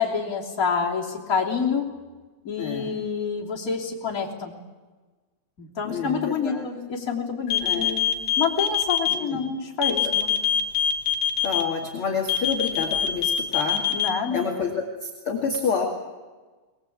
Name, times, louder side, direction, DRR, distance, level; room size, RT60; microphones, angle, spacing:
voice 1, 0.0-1.8 2.4-4.5 5.6-8.1 8.4-10.3 13.9-14.4, left 6 dB, 20° left, -2 dB, 2.8 m, -27 dB
voice 2, 2.6-3.0 5.8-6.7 7.6-8.0 9.1-9.4 9.9-10.1 11.4-13.9 14.3-15.8, left 5 dB, 40° left, 0 dB, 2.2 m, -28 dB
sound 1, 7.5-9.1 9.8-11.6 12.3-14.1, left 10 dB, 55° left, 2.0 m, -23 dB
22.0 x 20.5 x 8.7 m, 1.3 s
omnidirectional pair, 5.4 m